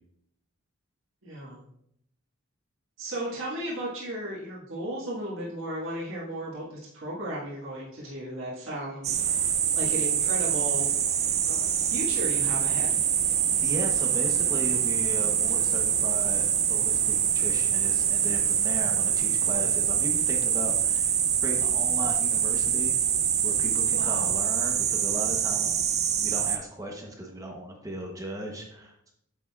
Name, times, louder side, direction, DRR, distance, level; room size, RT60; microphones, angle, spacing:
voice 1, 1.2-1.6 3.0-9.2 9.7-10.9 11.4-13.0 23.9-24.3, right 1 dB, 65° right, -7 dB, 1.8 m, -35 dB
sound 1, 9.0-26.6, right 8 dB, 30° right, 0.4 m, -25 dB
voice 2, 13.6-23.0 23.4-29.1, right 1 dB, 15° right, 1 dB, 0.9 m, -37 dB
8.6 x 6.7 x 2.4 m, 0.75 s
head